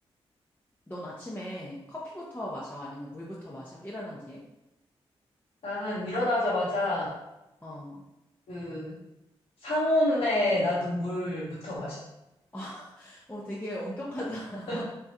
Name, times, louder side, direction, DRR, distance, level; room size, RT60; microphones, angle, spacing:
voice 1, 0.9-4.4 7.6-8.0 12.5-14.9, equal, 15° left, -5 dB, 0.6 m, -38 dB
voice 2, 5.6-7.1 8.5-8.9 9.6-12.0 14.7-14.8, left 1 dB, 70° left, -9 dB, 0.9 m, -28 dB
3.4 x 2.3 x 2.7 m, 0.94 s
supercardioid pair, 40°, 11 cm